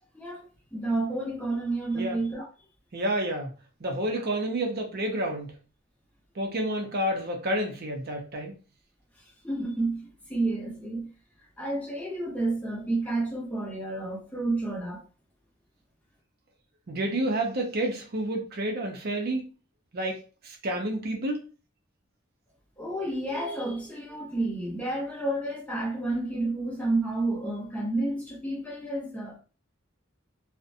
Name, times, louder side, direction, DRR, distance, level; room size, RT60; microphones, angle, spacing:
voice 1, 0.1-2.5 9.4-11.1 11.6-15.0 22.8-29.4, right 2 dB, 5° left, 0.7 m, -30 dB
voice 2, 2.9-3.5 3.8-5.5 6.4-8.5 16.9-19.5 19.9-21.4, right 1 dB, 50° right, 0.5 m, -29 dB
2.5 x 2.1 x 2.6 m
head